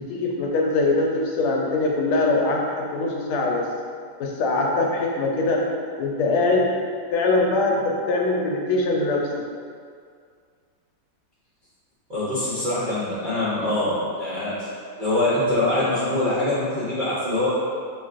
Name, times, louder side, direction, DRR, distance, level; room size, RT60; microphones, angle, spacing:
voice 1, 0.1-3.6 4.2-5.6 6.0-6.7 7.1-9.3, left 2 dB, 90° left, -1 dB, 1.5 m, -22 dB
voice 2, 12.1-14.7 15.0-17.5, left 1 dB, 85° right, -12 dB, 0.4 m, -24 dB
6.1 x 2.3 x 2.5 m, 2.1 s
omnidirectional pair, 2.3 m